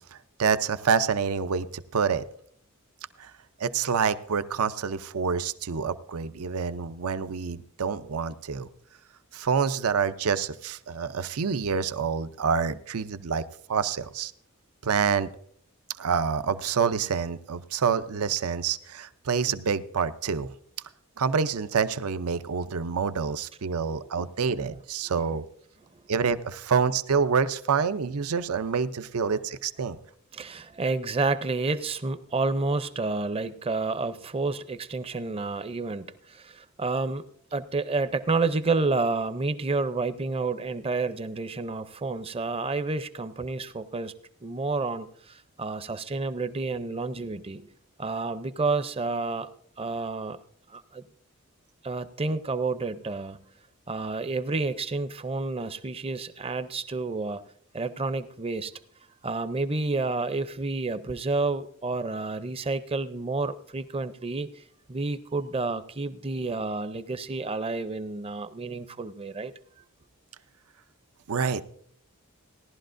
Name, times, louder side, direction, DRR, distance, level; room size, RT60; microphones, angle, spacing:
voice 1, 0.0-1.7 1.9-2.2 3.2-3.3 3.6-8.7 9.3-13.4 13.7-14.3 14.8-15.3 16.0-20.5 21.2-25.4 26.1-30.0 71.3-71.7, right 6 dB, 85° right, 13 dB, 0.6 m, -27 dB
voice 2, 30.3-37.2 37.5-44.1 44.4-47.7 48.0-49.5 49.8-50.4 50.7-51.0 51.8-53.4 53.9-57.4 57.7-58.7 59.2-64.6 64.9-69.5, right 3 dB, 25° right, 13 dB, 0.5 m, -30 dB
17.5 x 11.5 x 2.5 m, 0.63 s
head